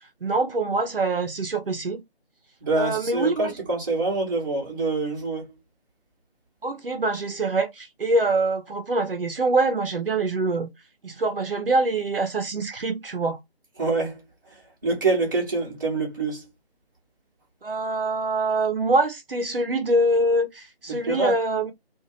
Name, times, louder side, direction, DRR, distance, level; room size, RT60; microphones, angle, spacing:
voice 1, 0.2-2.0 2.8-3.5 6.6-10.7 11.0-13.4 17.6-21.7, right 2 dB, 60° right, 0.7 m, -24 dB
voice 2, 2.6-5.5 13.8-14.2 14.8-16.4 20.9-21.4, right 3 dB, 20° right, 0.9 m, -25 dB
2.7 x 2.4 x 2.8 m
figure-of-eight pair, 155°, 31 cm